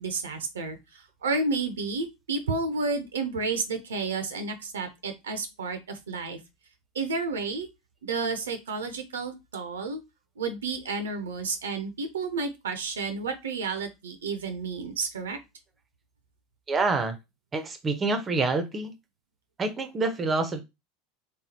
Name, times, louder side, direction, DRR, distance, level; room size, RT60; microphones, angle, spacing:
voice 1, 0.0-6.4 6.9-7.7 8.0-10.0 10.4-15.4, right 4 dB, 75° right, 8 dB, 0.5 m, -31 dB
voice 2, 16.7-17.2 17.5-18.9 19.6-20.6, right 3 dB, 25° right, 8 dB, 0.5 m, -27 dB
3.4 x 2.9 x 2.8 m, 0.23 s
figure-of-eight pair, 80°, 0 cm